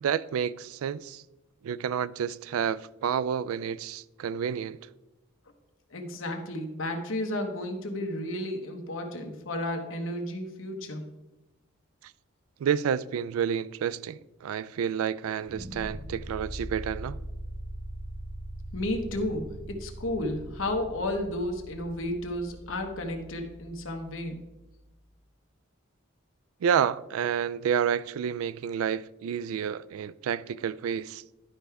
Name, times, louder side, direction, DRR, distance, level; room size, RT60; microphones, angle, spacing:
voice 1, 0.0-1.2 1.6-4.8 12.6-17.2 26.6-31.2, right 8 dB, 90° right, 0.3 m, -29 dB
voice 2, 5.9-11.1 18.7-24.4, left 1 dB, 70° left, 1.1 m, -32 dB
sound 1, 15.5-24.5, right 1 dB, 20° right, 0.9 m, -41 dB
11.0 x 4.7 x 3.4 m
head